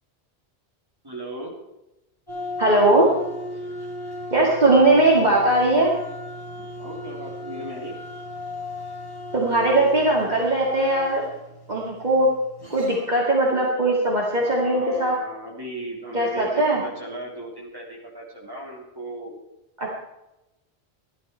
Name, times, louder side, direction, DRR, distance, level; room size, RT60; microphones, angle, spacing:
voice 1, 1.0-1.5 6.6-7.9 14.4-19.3, right 1 dB, 20° right, -2 dB, 3.4 m, -36 dB
sound 1, 2.3-13.2, left 1 dB, 20° left, 5.5 m, -36 dB
voice 2, 2.6-3.1 4.3-5.9 9.3-11.2 11.7-12.3 12.7-15.1 16.1-16.8 19.8-20.0, right 2 dB, 40° right, -4 dB, 2.4 m, -19 dB
15.0 x 11.5 x 4.5 m, 0.94 s
omnidirectional pair, 1.1 m